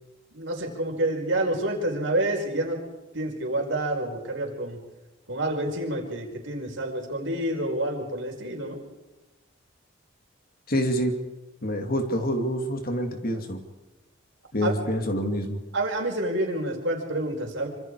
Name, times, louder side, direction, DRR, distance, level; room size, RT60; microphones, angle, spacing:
voice 1, 0.3-2.8 3.1-4.8 5.3-8.8 14.6-14.7 15.7-17.7, right 1 dB, 60° right, 1 dB, 5.2 m, -28 dB
voice 2, 10.7-11.2 11.6-13.6 14.5-15.6, equal, 45° left, 5 dB, 2.6 m, -27 dB
26.0 x 26.0 x 4.9 m, 1.0 s
head